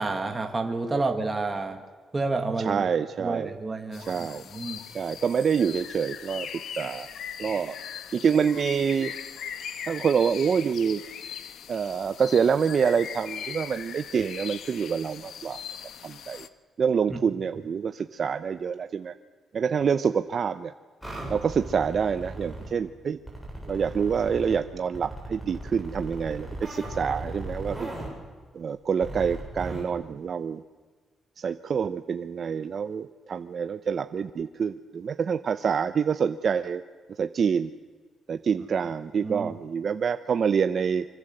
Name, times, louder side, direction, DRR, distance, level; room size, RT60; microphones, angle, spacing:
voice 1, 0.0-1.8 2.1-2.8 3.2-4.1 4.5-4.8 17.1-17.2 39.2-39.5, right 3 dB, 20° right, 4 dB, 2.1 m, -29 dB
voice 2, 2.6-3.5 4.0-4.4 4.9-7.1 7.4-7.8 8.1-9.1 9.9-11.0 11.7-15.6 16.0-16.5 16.8-19.1 19.5-20.7 21.3-23.2 23.7-27.9 28.5-30.6 31.4-36.8 37.1-37.7 38.3-41.0, right 6 dB, 45° right, 10 dB, 0.7 m, -26 dB
sound 1, 3.9-16.5, left 8 dB, 65° left, 1.4 m, -40 dB
sound 2, 21.0-22.7 23.3-24.6 24.9-28.1 29.0-29.8, right 1 dB, 5° left, 7.9 m, -37 dB
25.0 x 25.0 x 7.9 m, 1.5 s
cardioid pair, 155°, 0 cm